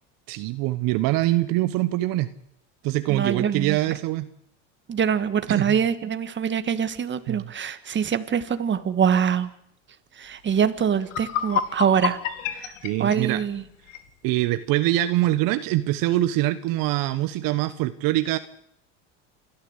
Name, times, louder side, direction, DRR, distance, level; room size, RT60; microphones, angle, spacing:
voice 1, 0.3-2.3 2.8-4.3 5.5-5.8 7.3-7.4 12.8-13.4 14.2-18.4, right 16 dB, 60° right, 12 dB, 1.2 m, -24 dB
voice 2, 3.1-3.8 4.9-9.5 10.2-12.2 12.5-12.7 13.0-13.6, right 7 dB, 30° right, 11 dB, 1.8 m, -24 dB
sound 1, 10.6-10.7 11.0-14.1, left 10 dB, 85° left, 2.3 m, -29 dB
28.0 x 13.5 x 8.2 m, 0.75 s
supercardioid pair, 105°, 37 cm